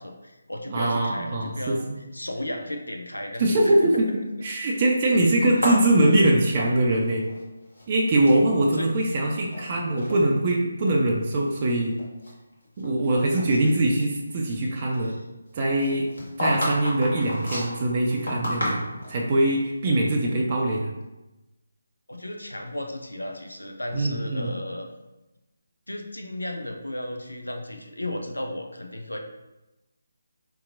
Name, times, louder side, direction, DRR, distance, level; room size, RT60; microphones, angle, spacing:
voice 1, 0.0-4.0 5.6-5.7 8.5-8.9 13.4-13.6 14.9-15.2 22.1-24.9 25.9-29.2, left 1 dB, 85° left, 3 dB, 0.4 m, -35 dB
voice 2, 0.7-1.8 3.4-7.3 7.9-12.0 12.8-15.2 15.5-16.1 16.4-18.8 19.1-20.9 23.9-24.5, right 1 dB, 35° right, -1 dB, 0.4 m, -22 dB
sound 1, 5.4-7.4 7.7-8.5 9.1-9.6 10.0-10.2 10.9-11.0 11.5-13.0 13.3-13.5 15.8-19.2, left 1 dB, 70° left, 1.3 m, -31 dB
3.8 x 2.8 x 2.5 m, 1.0 s
figure-of-eight pair, 150°, 0 cm